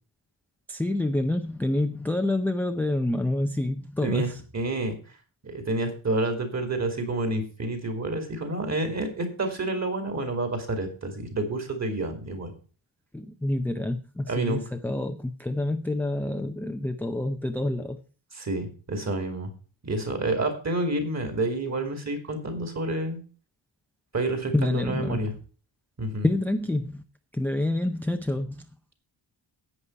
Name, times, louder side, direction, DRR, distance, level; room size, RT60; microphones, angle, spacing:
voice 1, 0.7-4.4 13.1-18.0 24.5-25.3 26.2-27.0 27.3-28.6, left 1 dB, 5° left, 0.5 m, -27 dB
voice 2, 4.0-4.9 5.4-12.5 14.3-14.6 18.3-19.5 19.8-23.2 24.1-25.3 26.0-26.3, right 2 dB, 35° right, 2.7 m, -29 dB
11.0 x 8.3 x 4.6 m
wide cardioid pair, 170°, 47 cm